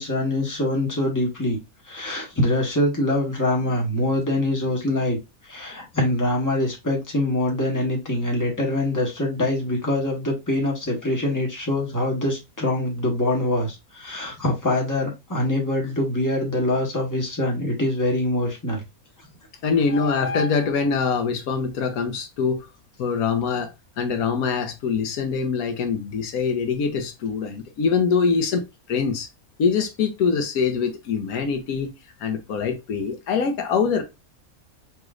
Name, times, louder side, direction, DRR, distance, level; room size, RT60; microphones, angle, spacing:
voice 1, 0.0-1.6 1.8-5.2 5.4-18.8, left 1 dB, 15° left, 1.4 m, -24 dB
voice 2, 19.6-22.6 23.0-23.7 24.0-28.6 28.9-29.3 29.6-31.9 32.2-34.0, left 5 dB, 80° left, 1.3 m, -23 dB
6.0 x 3.1 x 2.4 m
omnidirectional pair, 1.5 m